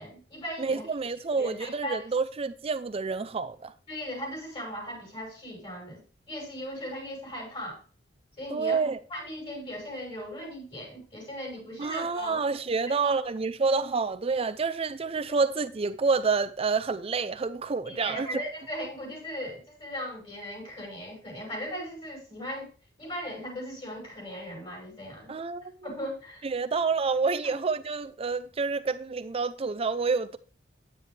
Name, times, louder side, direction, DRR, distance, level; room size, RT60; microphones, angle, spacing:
voice 1, 0.0-0.8 1.4-2.1 3.9-6.0 6.3-7.8 8.4-8.8 9.1-12.4 12.8-13.2 17.8-22.7 23.0-25.3 25.8-26.5 27.4-27.5, equal, 30° left, 6.0 m, -38 dB
voice 2, 0.6-3.7 8.5-9.0 11.8-18.3 25.3-25.7 26.4-30.4, right 4 dB, 30° right, 0.5 m, -28 dB
9.7 x 8.8 x 3.3 m
head